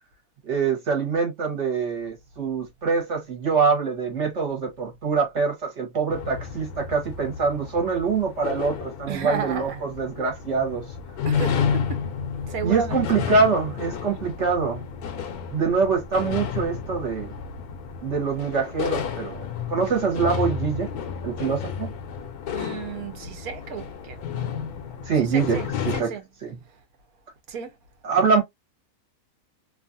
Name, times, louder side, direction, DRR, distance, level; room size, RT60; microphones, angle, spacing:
voice 1, 0.4-10.9 12.6-14.8 15.5-17.3 18.0-20.9 21.2-21.9 25.0-25.6 25.8-26.1 26.4-26.5 28.0-28.4, right 5 dB, 50° right, 1.3 m, -24 dB
sound 1, 6.1-26.0, left 7 dB, 80° left, 1.2 m, -31 dB
voice 2, 9.1-9.8 11.2-12.0 12.5-13.0 22.5-24.2 25.1-26.2 27.5-27.7, right 6 dB, 75° right, 1.2 m, -33 dB
3.0 x 2.4 x 2.5 m
omnidirectional pair, 1.6 m